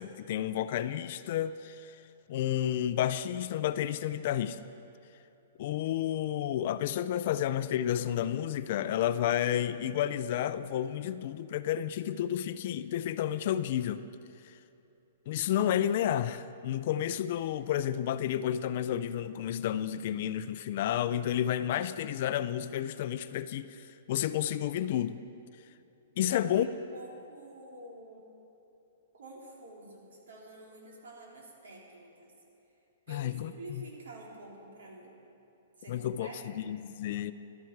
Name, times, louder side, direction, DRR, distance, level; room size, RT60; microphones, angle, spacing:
voice 1, 0.0-1.9 2.3-4.6 5.6-14.0 15.3-25.2 26.2-26.7 33.1-33.8 35.9-36.3 36.7-37.3, left 11 dB, 35° left, 13 dB, 0.3 m, -31 dB
voice 2, 26.2-28.3 29.1-32.3 33.1-35.2 35.8-36.6, right 1 dB, 90° right, -2 dB, 3.4 m, -49 dB
14.0 x 12.0 x 4.6 m, 2.9 s
hypercardioid pair, 180°, 0 cm